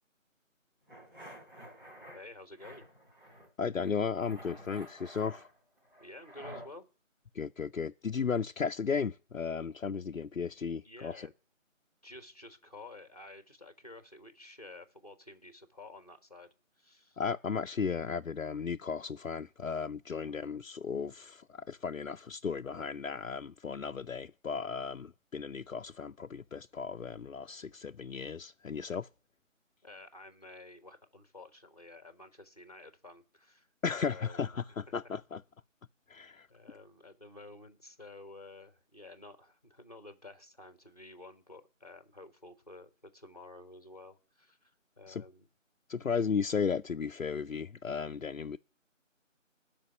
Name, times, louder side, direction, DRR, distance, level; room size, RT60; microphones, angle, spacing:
sound 1, 0.9-2.2 2.6-3.5 3.8-6.7, equal, 40° right, 3.8 m, -50 dB
voice 1, 2.1-2.8 6.0-6.8 10.8-11.3 12.0-16.5 16.8-17.2 20.1-20.4 29.8-34.5 36.5-45.5, left 2 dB, 30° left, 1.3 m, -51 dB
voice 2, 3.6-5.5 7.3-11.3 17.2-29.1 33.8-35.4 36.1-36.5 45.1-45.2 45.9-48.6, left 6 dB, 85° left, 0.6 m, -35 dB
12.5 x 5.3 x 8.9 m
figure-of-eight pair, 175°, 39 cm